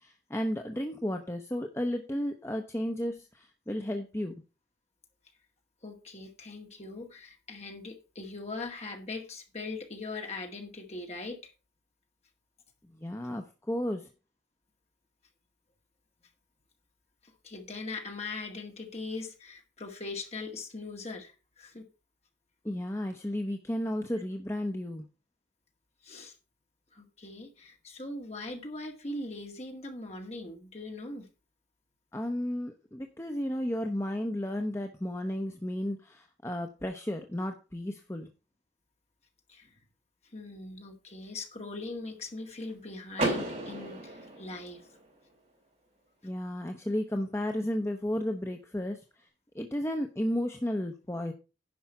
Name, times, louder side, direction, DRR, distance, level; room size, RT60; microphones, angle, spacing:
voice 1, 0.0-4.3 13.0-14.1 22.6-25.1 32.1-38.3 46.2-49.3 49.5-51.3, left 1 dB, 15° left, 0.7 m, -33 dB
voice 2, 5.8-11.5 17.2-21.8 26.0-26.4 26.9-31.3 39.5-39.7 40.3-44.9, left 3 dB, 35° left, 2.0 m, -41 dB
Car / Door, 43.1-45.1, right 1 dB, 40° right, 4.3 m, -33 dB
10.5 x 5.5 x 5.5 m
head